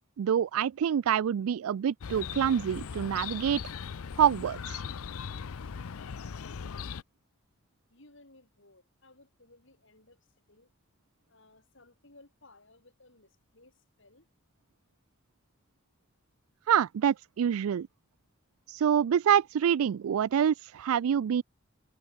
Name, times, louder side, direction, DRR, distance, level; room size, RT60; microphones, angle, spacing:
voice 1, 0.2-3.6 4.2-4.8 16.7-17.9 18.7-21.4, right 8 dB, 85° right, 0.3 m, -26 dB
Chirp tweet, 2.0-7.0, left 6 dB, 85° left, 0.5 m, -39 dB
voice 2, 7.9-10.2 10.5-10.7 11.3-14.3, left 2 dB, 60° left, 5.5 m, -59 dB
head